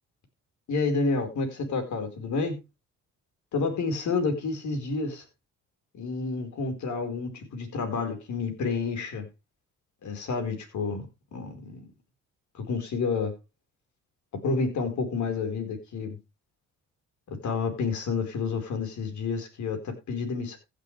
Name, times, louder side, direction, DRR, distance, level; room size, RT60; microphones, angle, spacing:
voice 1, 0.7-2.6 3.5-5.2 5.9-9.3 10.0-11.1 11.3-11.8 12.5-13.3 14.4-16.2 17.3-20.6, left 4 dB, 70° left, 6 dB, 4.6 m, -29 dB
15.5 x 9.2 x 3.3 m, 0.26 s
cardioid pair, 90°, 30 cm